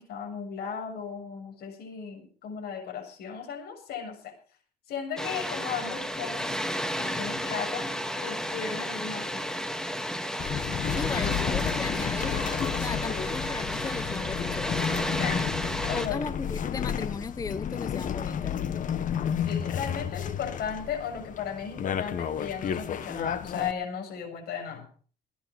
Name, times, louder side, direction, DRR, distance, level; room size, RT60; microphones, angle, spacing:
voice 1, 0.0-4.3 4.9-6.6 7.0-9.4 15.1-16.2 19.4-24.9, left 7 dB, 70° left, 3 dB, 7.0 m, -36 dB
Water, 5.2-16.1, equal, 5° left, 1.8 m, -32 dB
sound 1, 10.4-23.7, left 8 dB, 50° left, 1.4 m, -32 dB
voice 2, 11.0-15.1 15.9-18.6, left 4 dB, 20° left, 13 dB, 0.7 m, -37 dB
17.5 x 10.0 x 6.4 m, 0.42 s
cardioid pair, 110°, 17 cm